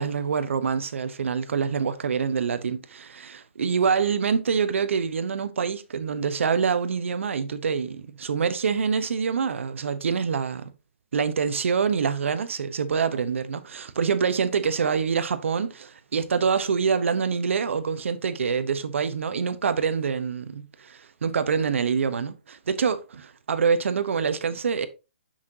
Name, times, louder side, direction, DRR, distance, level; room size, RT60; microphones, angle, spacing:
voice 1, 0.0-10.7 11.1-24.9, right 6 dB, 75° right, 1.0 m, -26 dB
7.3 x 5.8 x 2.8 m
hypercardioid pair, 155°, 7 cm